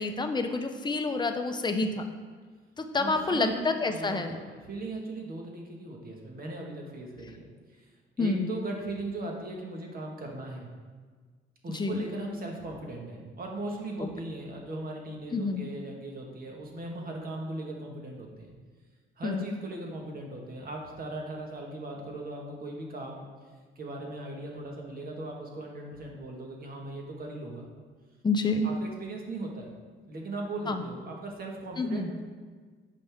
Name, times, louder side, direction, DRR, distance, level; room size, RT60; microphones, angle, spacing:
voice 1, 0.0-2.0 2.8-4.4 8.2-8.5 11.7-12.0 14.0-14.1 15.3-15.6 19.2-19.5 28.2-28.7 30.7-30.8 31.8-32.1, left 3 dB, 20° left, 5 dB, 0.7 m, -28 dB
voice 2, 3.0-7.9 8.2-10.7 11.6-18.5 19.2-23.3 23.7-27.6 28.6-29.7 30.1-32.2, right 2 dB, 50° right, 0 dB, 1.5 m, -38 dB
7.5 x 5.3 x 3.5 m, 1.5 s
cardioid pair, 90°, 20 cm